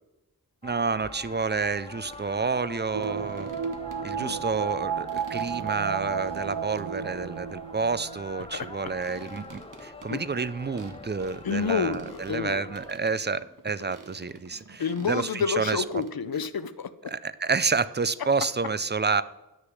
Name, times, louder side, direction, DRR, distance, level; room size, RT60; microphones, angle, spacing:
sound 1, 0.6-12.9, left 2 dB, 15° left, 0.8 m, -45 dB
voice 1, 0.6-3.5 4.0-15.8 17.1-19.2, right 4 dB, 30° right, 16 dB, 0.4 m, -29 dB
sound 2, 1.7-1.8 2.1-2.2 3.0-4.3 4.7-5.8 6.5-7.1 8.5-11.4 11.9-13.6 13.9-16.1, right 4 dB, 60° right, 1.1 m, -49 dB
sound 3, 2.9-8.9 9.2-9.3, right 7 dB, 80° right, 0.5 m, -33 dB
voice 2, 8.5-8.9 10.1-10.2 11.4-12.6 14.8-17.1, left 6 dB, 75° left, 14 dB, 0.7 m, -29 dB
9.9 x 6.5 x 6.1 m, 1.0 s
wide cardioid pair, 60°, 36 cm